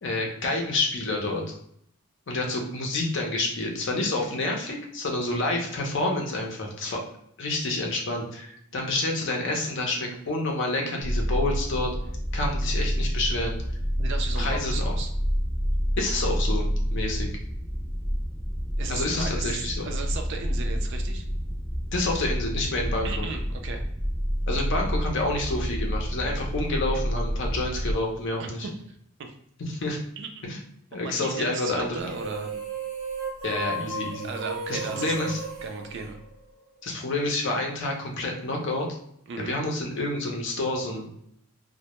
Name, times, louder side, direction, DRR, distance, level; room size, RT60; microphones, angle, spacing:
voice 1, 0.0-1.4 2.3-7.0 7.4-11.9 12.3-13.6 14.4-15.0 16.0-17.3 18.9-19.9 21.9-23.3 24.5-28.7 29.7-30.0 30.4-30.6 30.9-32.0 33.4-34.3 34.7-35.4 36.8-38.9 39.4-41.1, left 2 dB, 55° left, 1 dB, 0.6 m, -28 dB
sound 1, 11.0-28.0, equal, 5° left, 0.5 m, -28 dB
voice 2, 14.0-15.1 18.8-21.2 23.0-23.8 28.4-29.3 30.2-30.5 30.9-32.7 34.2-35.4 35.6-36.2 39.3-39.5, right 4 dB, 55° right, 5 dB, 0.4 m, -36 dB
sound 2, 32.0-36.7, right 3 dB, 80° right, 0.9 m, -34 dB
2.1 x 2.1 x 2.8 m, 0.71 s
head